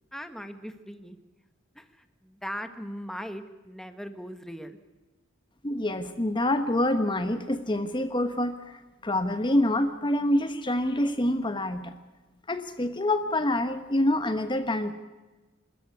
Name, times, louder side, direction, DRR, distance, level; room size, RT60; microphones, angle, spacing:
voice 1, 0.1-1.2 1.7-4.8, equal, ahead, 8 dB, 1.3 m, -39 dB
voice 2, 5.6-11.9 12.5-14.9, left 1 dB, 25° left, 9 dB, 1.1 m, -26 dB
26.5 x 14.0 x 9.6 m, 1.2 s
head